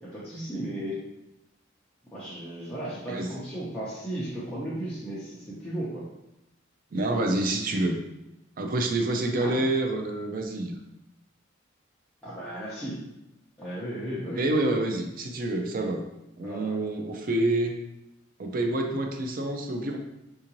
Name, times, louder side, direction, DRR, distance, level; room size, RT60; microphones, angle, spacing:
voice 1, 0.0-1.1 2.1-6.0 9.4-9.6 12.2-13.0 13.6-14.5 16.4-16.7, right 1 dB, 5° left, -10 dB, 0.6 m, -35 dB
voice 2, 6.9-8.0 8.6-10.8 14.3-16.1 16.4-17.8 18.4-20.0, right 2 dB, 45° right, 3 dB, 0.4 m, -27 dB
3.7 x 2.6 x 2.9 m, 0.88 s
head